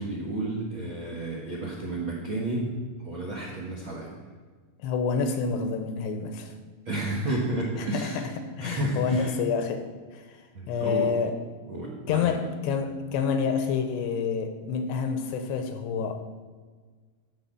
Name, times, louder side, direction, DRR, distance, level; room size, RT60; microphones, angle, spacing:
voice 1, 0.0-2.7 3.0-4.1 6.8-8.3 8.6-9.3 10.5-11.1 11.7-12.4, right 1 dB, 65° right, -4 dB, 1.3 m, -31 dB
voice 2, 4.8-6.5 7.8-9.9 10.1-10.4 10.7-11.4 12.1-16.2, left 5 dB, 80° left, 7 dB, 2.9 m, -28 dB
14.0 x 4.8 x 7.5 m, 1.5 s
omnidirectional pair, 5.0 m